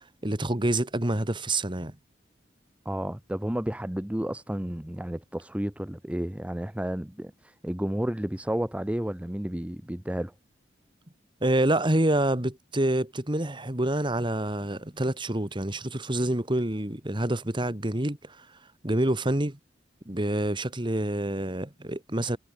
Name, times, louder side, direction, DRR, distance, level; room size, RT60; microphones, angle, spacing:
voice 1, 0.2-2.0 11.4-18.4 18.8-19.6 20.1-22.4, right 1 dB, 25° right, 2.0 m, -27 dB
voice 2, 2.8-10.3, right 1 dB, 5° right, 0.6 m, -31 dB
head